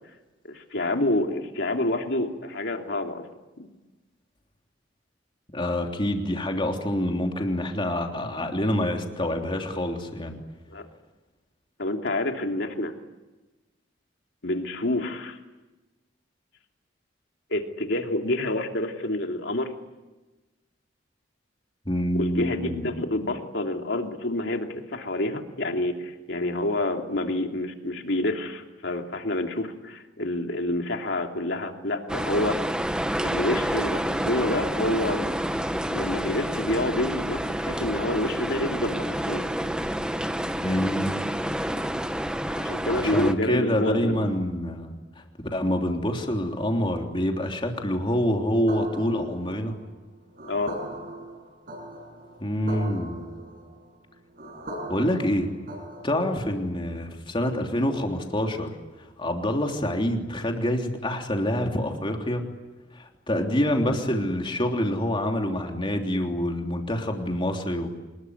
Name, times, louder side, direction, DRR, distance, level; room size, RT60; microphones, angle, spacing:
voice 1, 0.4-3.3 3.6-3.7 10.7-10.8 11.8-12.9 14.4-15.4 17.5-19.7 22.1-32.6 33.2-35.5 35.9-39.5 42.6-44.2 50.5-50.7, left 1 dB, 70° left, 3 dB, 2.9 m, -28 dB
voice 2, 5.5-10.4 21.8-22.9 40.6-41.3 43.0-44.9 45.5-49.8 52.4-53.3 54.9-55.5 56.0-58.7 59.2-62.4 62.9-67.9, left 1 dB, 25° left, 2 dB, 3.3 m, -26 dB
sound 1, 32.1-43.3, equal, 5° right, 1.1 m, -28 dB
sound 2, 48.7-56.5, right 1 dB, 50° right, 7.3 m, -39 dB
26.0 x 21.0 x 9.7 m, 1.1 s
head